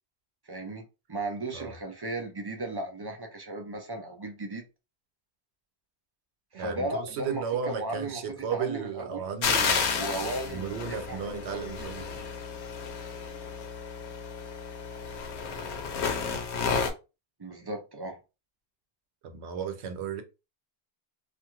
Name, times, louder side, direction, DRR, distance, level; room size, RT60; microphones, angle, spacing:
voice 1, 0.5-0.8 1.1-4.6 6.5-8.2 8.5-9.3 9.9-11.9 17.4-18.2, right 2 dB, 40° right, 0.4 m, -36 dB
voice 2, 6.5-9.9 10.5-12.2 19.2-20.2, right 7 dB, 85° right, 0.9 m, -34 dB
sound 1, 9.4-16.9, left 5 dB, 85° left, 0.9 m, -32 dB
2.5 x 2.3 x 2.9 m
omnidirectional pair, 1.1 m